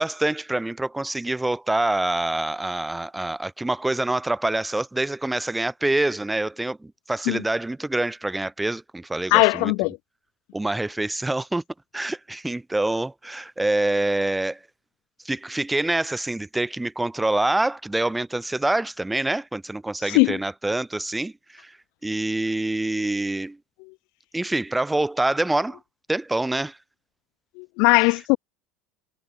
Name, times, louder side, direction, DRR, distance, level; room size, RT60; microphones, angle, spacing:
voice 1, 0.0-9.7 10.5-11.6 11.9-14.6 15.2-21.7 22.0-23.6 24.3-25.8 26.1-26.8, right 2 dB, 10° right, 2.0 m, -26 dB
voice 2, 9.3-10.0 20.1-20.4 27.6-28.4, left 33 dB, 70° left, 0.3 m, -19 dB
supercardioid pair, 100°, 0 cm